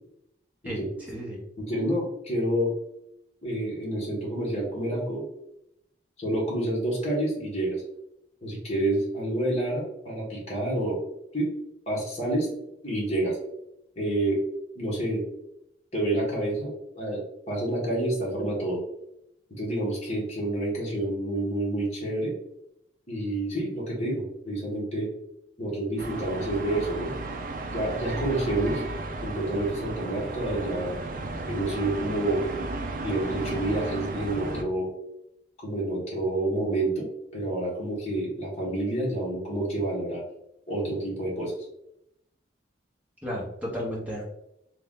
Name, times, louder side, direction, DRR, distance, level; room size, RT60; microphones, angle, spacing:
voice 1, 0.6-1.4 43.2-44.3, equal, 10° right, -5 dB, 0.9 m, -33 dB
voice 2, 1.6-2.7 3.4-5.2 6.2-7.8 8.4-11.0 11.3-11.5 11.9-12.5 12.8-13.4 14.0-14.4 14.7-15.2 15.9-18.8 19.5-22.3 23.1-25.1 25.6-27.1 27.7-28.8 29.2-30.9 31.5-32.4 33.0-34.9 35.6-37.1 37.3-40.2 40.7-41.5, right 1 dB, 35° left, -5 dB, 1.2 m, -28 dB
sound 1, 26.0-34.6, right 2 dB, 45° right, 0.4 m, -34 dB
3.4 x 2.4 x 3.7 m, 0.81 s
head